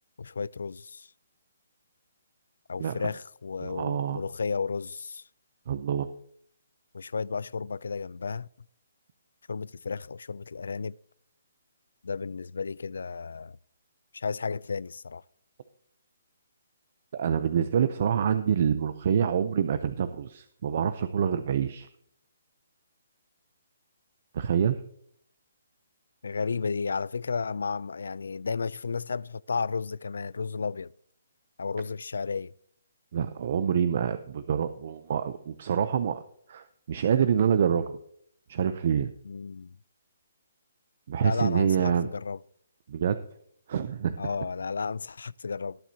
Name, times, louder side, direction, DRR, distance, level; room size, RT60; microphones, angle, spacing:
voice 1, 0.2-1.1 2.7-5.2 6.9-8.5 9.5-11.0 12.0-13.6 14.1-15.2 26.2-30.9 31.6-32.5 39.2-39.8 41.2-42.4 44.2-45.8, left 5 dB, 80° left, 0.3 m, -33 dB
voice 2, 3.6-4.2 5.7-6.1 17.1-21.9 24.3-24.8 33.1-36.2 36.5-38.0 38.5-39.1 41.1-42.1 42.9-43.2 43.7-44.2, right 8 dB, 35° right, 0.5 m, -26 dB
20.0 x 7.4 x 2.8 m
hypercardioid pair, 175°, 0 cm